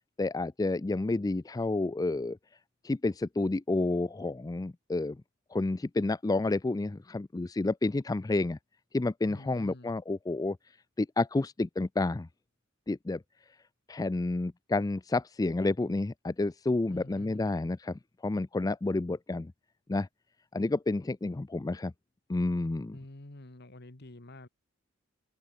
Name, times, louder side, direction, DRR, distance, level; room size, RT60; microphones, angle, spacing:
voice 1, 0.2-2.4 2.8-5.2 5.5-8.6 8.9-10.6 11.0-12.3 12.9-13.2 13.9-19.5 19.9-20.1 20.5-21.9 22.3-22.9, left 2 dB, 20° left, 0.4 m, -30 dB
voice 2, 9.3-9.9 16.8-17.5 22.9-24.5, left 1 dB, 55° left, 1.7 m, -48 dB
head